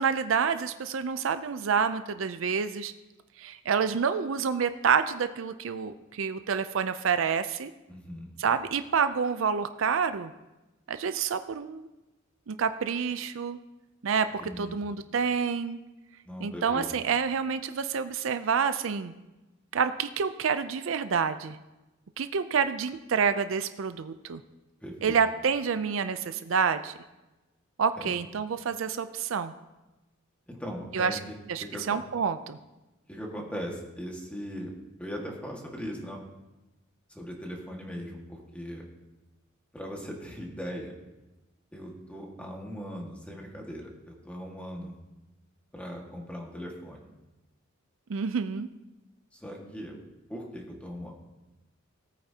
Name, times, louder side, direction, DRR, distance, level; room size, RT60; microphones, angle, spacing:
voice 1, 0.0-2.9 3.4-7.7 8.4-10.3 10.9-11.9 12.5-13.6 14.0-15.8 16.4-19.1 19.7-21.6 22.2-24.4 25.0-26.9 27.8-29.5 30.9-31.2 31.5-32.6 48.1-48.7, right 6 dB, 65° right, 11 dB, 0.5 m, -28 dB
voice 2, 7.9-8.3 14.4-14.8 16.3-16.9 24.8-25.2 28.0-28.1 30.5-32.0 33.1-34.7 35.0-36.2 37.1-38.8 39.7-40.9 41.7-44.9 45.7-47.0 49.3-50.0 50.3-51.1, equal, 5° left, -1 dB, 1.7 m, -39 dB
18.0 x 8.9 x 2.8 m, 1.0 s
head